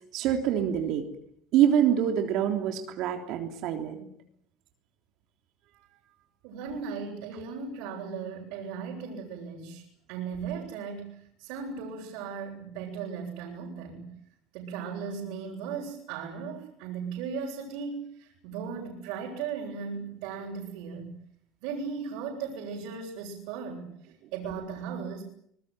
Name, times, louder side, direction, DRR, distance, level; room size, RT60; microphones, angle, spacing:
voice 1, 0.1-1.0 1.5-4.1, right 9 dB, 65° right, 5 dB, 3.4 m, -25 dB
voice 2, 6.4-9.8 10.1-14.1 14.5-21.1 21.6-23.9 24.3-25.2, right 6 dB, 80° right, -2 dB, 7.8 m, -37 dB
25.5 x 21.0 x 9.3 m, 0.68 s
cardioid pair, 130°, 0 cm